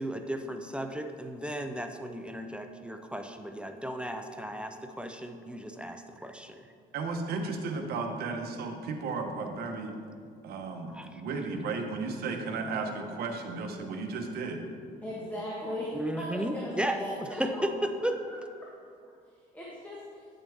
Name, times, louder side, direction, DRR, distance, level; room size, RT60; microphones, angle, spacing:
voice 1, 0.0-6.6 10.9-11.2 15.9-18.1, right 1 dB, 5° right, 6 dB, 0.5 m, -35 dB
voice 2, 6.9-10.0 10.4-14.6, right 4 dB, 70° right, 4 dB, 1.1 m, -34 dB
voice 3, 15.0-17.6 18.3-18.4 19.5-20.3, left 1 dB, 10° left, -6 dB, 1.5 m, -38 dB
9.7 x 7.0 x 3.5 m, 2.3 s
cardioid pair, 110°, 17 cm